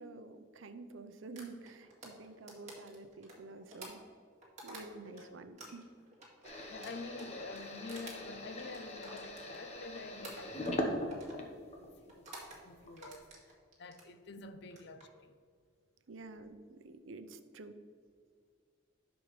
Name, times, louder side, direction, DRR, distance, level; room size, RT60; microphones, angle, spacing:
voice 1, 0.0-4.0 4.6-5.8 6.4-6.8 14.4-14.5 16.1-17.8, right 3 dB, 90° right, 0.6 m, -49 dB
sound 1, 1.4-5.2 5.6-9.9 10.2-10.8 11.1-11.4 12.1-12.6 13.0-14.1 14.6-15.0, right 2 dB, 40° right, 2.0 m, -51 dB
voice 2, 5.0-5.4 6.6-15.4, left 3 dB, 60° left, 0.6 m, -48 dB
sound 2, 6.4-12.0 12.4-13.1, left 1 dB, 35° left, 1.0 m, -41 dB
10.0 x 6.4 x 3.2 m
head